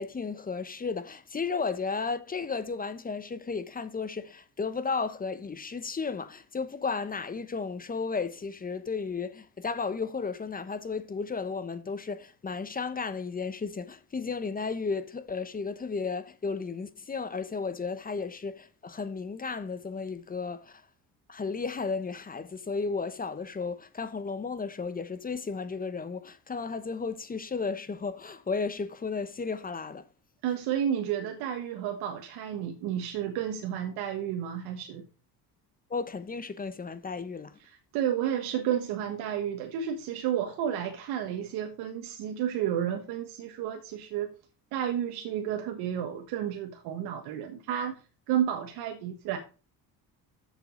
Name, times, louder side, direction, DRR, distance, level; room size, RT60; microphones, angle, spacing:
voice 1, 0.0-20.8 21.3-30.0 35.9-37.6, left 4 dB, 25° left, 1.0 m, -34 dB
voice 2, 30.4-35.0 37.6-44.3 44.7-48.0 48.3-49.4, right 10 dB, 90° right, 1.4 m, -31 dB
7.7 x 6.9 x 5.1 m
cardioid pair, 110°, 38 cm